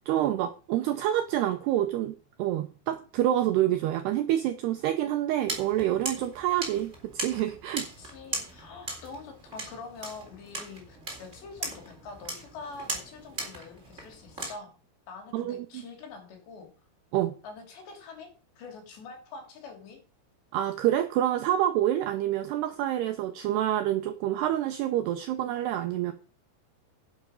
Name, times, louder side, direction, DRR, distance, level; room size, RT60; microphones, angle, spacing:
voice 1, 0.1-7.9 15.3-15.8 17.1-17.4 20.5-26.1, right 12 dB, 90° right, 2.3 m, -27 dB
sound 1, 5.5-14.5, right 2 dB, 15° right, 3.4 m, -39 dB
voice 2, 8.0-14.7 15.1-16.7 17.4-18.3 18.6-20.0, left 4 dB, 60° left, 5.1 m, -45 dB
11.5 x 8.7 x 5.2 m
omnidirectional pair, 5.7 m